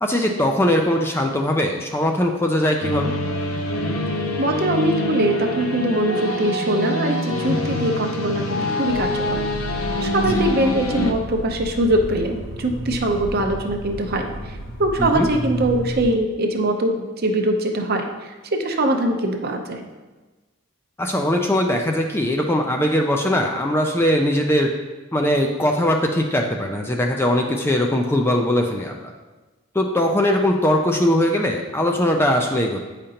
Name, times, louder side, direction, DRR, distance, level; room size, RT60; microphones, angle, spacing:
voice 1, 0.0-3.1 10.3-10.5 15.0-15.3 21.0-24.7 25.1-29.1 29.7-32.8, left 1 dB, 10° left, 2 dB, 0.4 m, -20 dB
sound 1, 2.8-11.1, left 1 dB, 85° left, 0.7 m, -25 dB
voice 2, 4.4-9.4 10.0-19.8, right 1 dB, 45° right, 4 dB, 0.7 m, -22 dB
sound 2, 8.9-16.2, equal, 50° left, 0.6 m, -32 dB
8.8 x 5.1 x 2.8 m, 1.2 s
head